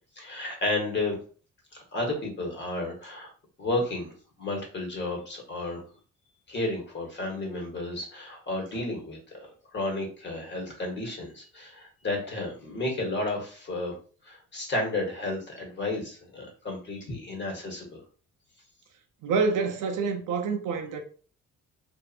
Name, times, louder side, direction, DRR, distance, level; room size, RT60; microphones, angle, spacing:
voice 1, 0.2-1.2 1.7-3.3 3.6-5.8 6.5-9.5 9.7-14.0 14.2-18.0, left 2 dB, 35° left, 1.2 m, -32 dB
voice 2, 19.2-21.0, right 5 dB, 85° right, 0.6 m, -27 dB
2.6 x 2.4 x 2.4 m
cardioid pair, 90°, 30 cm